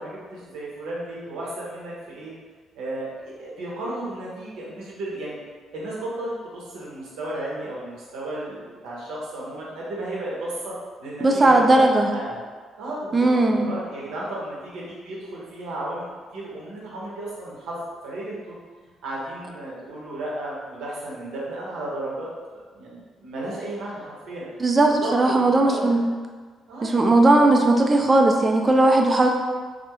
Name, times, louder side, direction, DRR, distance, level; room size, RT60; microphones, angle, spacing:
voice 1, 0.0-2.3 2.8-5.4 5.7-10.7 11.0-12.4 12.8-18.6 19.0-24.4 25.0-26.1 26.7-27.7, right 1 dB, 90° right, -5 dB, 0.7 m, -34 dB
voice 2, 11.2-12.1 13.1-13.7 24.6-26.1 26.8-29.3, right 2 dB, 30° right, 3 dB, 0.3 m, -18 dB
2.2 x 2.1 x 3.0 m, 1.5 s
cardioid pair, 90°, 0 cm